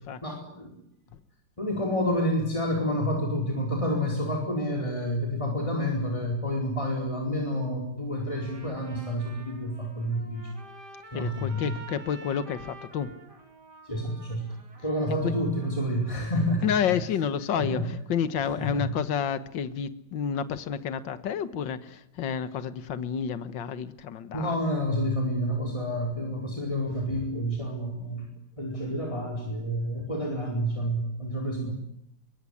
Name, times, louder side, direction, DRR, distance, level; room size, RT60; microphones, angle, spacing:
voice 1, 0.2-0.8 1.6-10.5 11.1-11.7 13.8-14.5 14.8-17.0 17.5-17.9 18.6-19.0 24.3-28.3 28.6-31.7, equal, 15° left, 0 dB, 4.8 m, -29 dB
Trumpet, 8.2-16.2, right 2 dB, 60° right, 4.3 m, -49 dB
voice 2, 11.1-13.1 16.6-17.8 18.1-24.6, left 8 dB, 75° left, 12 dB, 2.0 m, -30 dB
25.0 x 23.0 x 9.9 m, 0.77 s
omnidirectional pair, 2.0 m